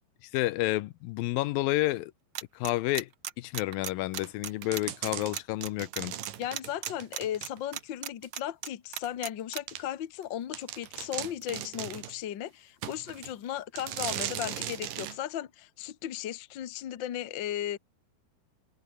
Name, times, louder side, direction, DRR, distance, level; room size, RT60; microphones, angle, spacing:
voice 1, 0.3-2.1 2.6-3.1 3.4-6.2, left 17 dB, 85° left, 2.4 m, -30 dB
sound 1, 2.3-9.6, right 10 dB, 85° right, 1.1 m, -36 dB
sound 2, 4.1-7.8 8.2-8.3 9.0-9.1 9.7-9.8 10.2-10.3 10.5-12.2 12.8-13.3 13.8-15.2, right 11 dB, 70° right, 3.2 m, -38 dB
voice 2, 6.4-17.8, left 11 dB, 70° left, 1.1 m, -36 dB
omnidirectional pair, 4.2 m